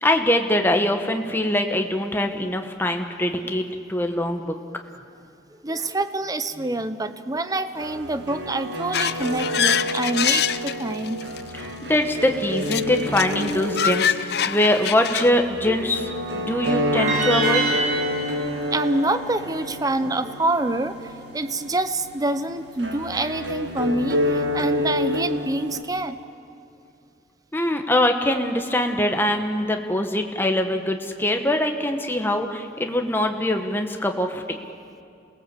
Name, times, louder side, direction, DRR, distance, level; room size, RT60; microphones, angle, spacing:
voice 1, 0.0-4.6 11.9-17.8 27.5-34.6, left 1 dB, 10° left, 4 dB, 1.2 m, -23 dB
voice 2, 5.6-11.3 11.6-11.8 18.3-18.4 18.7-26.2, right 2 dB, 20° right, 11 dB, 0.8 m, -26 dB
sound 1, 7.8-25.8, left 1 dB, 75° right, 2.0 m, -29 dB
sound 2, 8.9-11.4 12.6-15.3, left 9 dB, 60° left, 0.6 m, -25 dB
sound 3, 17.0-20.1, right 3 dB, 40° right, 7.1 m, -27 dB
27.5 x 19.0 x 7.5 m, 2.4 s
head